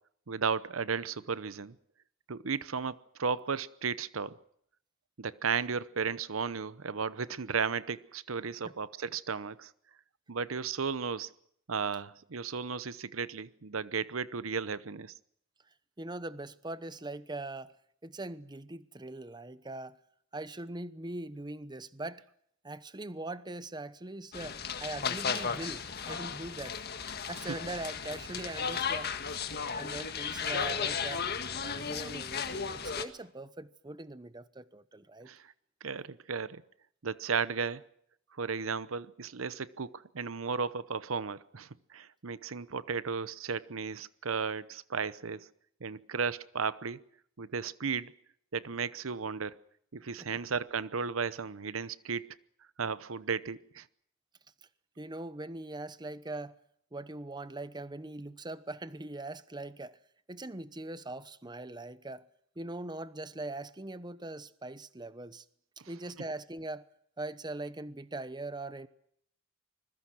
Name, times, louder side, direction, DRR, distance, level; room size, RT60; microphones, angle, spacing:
voice 1, 0.3-1.8 2.3-4.4 5.2-9.7 10.3-11.3 11.7-15.1 35.3-35.5 35.8-36.6 37.0-37.8 38.4-45.5 45.8-47.0 47.4-48.1 48.5-49.6 49.9-52.4 52.8-53.9, right 5 dB, 90° right, 0.8 m, -34 dB
voice 2, 16.0-17.7 18.0-20.0 20.3-22.2 22.6-26.9 27.3-29.1 29.8-31.3 31.6-35.3 50.2-50.3 55.0-56.6 56.9-60.0 60.3-62.3 62.6-65.4 65.9-66.8 67.2-68.9, right 2 dB, 20° right, 1.0 m, -41 dB
sound 1, 24.3-33.0, left 6 dB, 50° left, 1.7 m, -35 dB
25.0 x 21.5 x 6.3 m
head